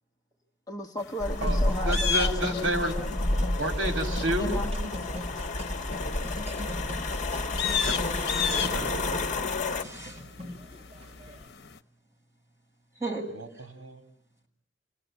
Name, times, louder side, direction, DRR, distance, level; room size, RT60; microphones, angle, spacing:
voice 1, 0.7-3.1 4.4-5.2, left 1 dB, 20° left, 2 dB, 1.2 m, -36 dB
sound 1, 1.0-11.8, left 8 dB, 60° left, 1.1 m, -36 dB
sound 2, 1.2-9.8, left 2 dB, 40° left, 1.3 m, -30 dB
sound 3, 1.4-11.5, left 1 dB, 35° right, 3.1 m, -41 dB
voice 2, 1.8-2.9 3.3-4.5 7.8-7.9 8.4-9.0 9.3-9.4 13.3-14.0, right 1 dB, 75° right, 5 dB, 2.8 m, -31 dB
voice 3, 7.9-9.3 9.8-10.2 13.0-13.2, right 3 dB, 15° right, -3 dB, 7.6 m, -38 dB
28.5 x 18.0 x 8.9 m, 0.67 s
head